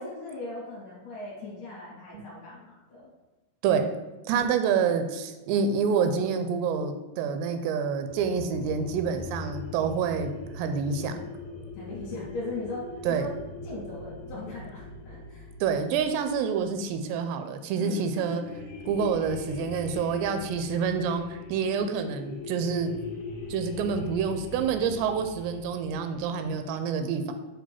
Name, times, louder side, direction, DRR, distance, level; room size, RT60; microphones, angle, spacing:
voice 1, 0.0-3.1 11.8-13.3 13.6-15.5 17.8-18.0, left 2 dB, 60° left, -5 dB, 2.5 m, -39 dB
voice 2, 4.3-11.1 13.1-13.3 15.6-18.5 18.9-22.9 23.5-27.3, right 6 dB, 85° right, 8 dB, 2.7 m, -27 dB
sound 1, 8.1-17.2 17.9-26.6, left 3 dB, 80° left, 1.7 m, -41 dB
7.6 x 2.9 x 5.6 m, 1.1 s
omnidirectional pair, 5.0 m